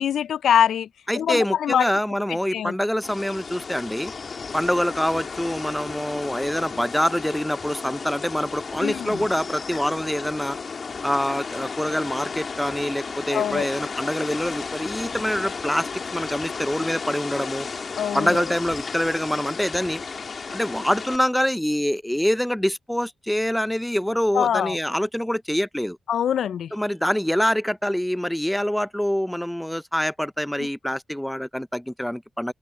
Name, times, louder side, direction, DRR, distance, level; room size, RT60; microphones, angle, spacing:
voice 1, 0.0-0.9 1.2-1.8 2.5-2.7 8.8-9.2 13.3-13.7 18.0-18.4 24.3-24.8 26.1-26.7, left 9 dB, 80° left, 0.4 m, -23 dB
voice 2, 1.1-4.1 4.5-10.6 11.0-17.7 18.1-20.0 20.5-26.0 26.7-32.5, equal, 5° left, 0.6 m, -25 dB
sound 1, 3.0-21.2, left 5 dB, 55° left, 1.9 m, -34 dB
supercardioid pair, 50°, 0 cm